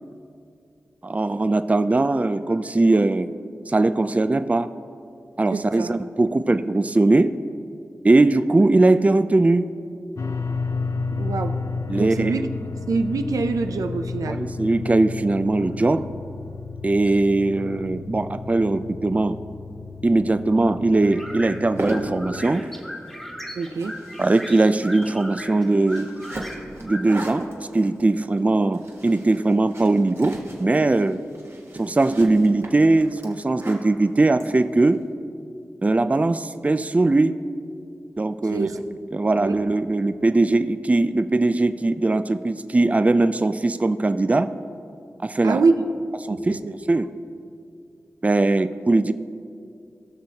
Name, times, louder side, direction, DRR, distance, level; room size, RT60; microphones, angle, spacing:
voice 1, 1.0-3.3 3.7-4.7 5.4-7.3 8.0-9.7 11.9-12.3 14.3-16.1 16.8-19.4 20.0-22.7 24.2-26.1 26.8-31.2 31.7-35.0 35.8-37.4 38.2-38.7 39.1-44.5 45.2-45.6 46.3-46.6 46.9-47.1 48.2-49.1, right 2 dB, 25° right, 12 dB, 0.3 m, -20 dB
voice 2, 5.5-5.9 11.2-11.6 11.9-12.4 12.9-14.4 23.6-23.9 38.5-38.8 39.4-39.6 45.4-45.8 46.3-46.7, right 4 dB, 85° right, 7 dB, 0.5 m, -24 dB
sound 1, 10.2-22.5, left 4 dB, 60° left, 0.4 m, -32 dB
sound 2, 21.0-27.0, equal, 5° left, 1.3 m, -38 dB
sound 3, 21.5-35.0, right 1 dB, 50° right, 1.3 m, -37 dB
18.0 x 6.3 x 2.8 m, 2.5 s
cardioid pair, 45°, 6 cm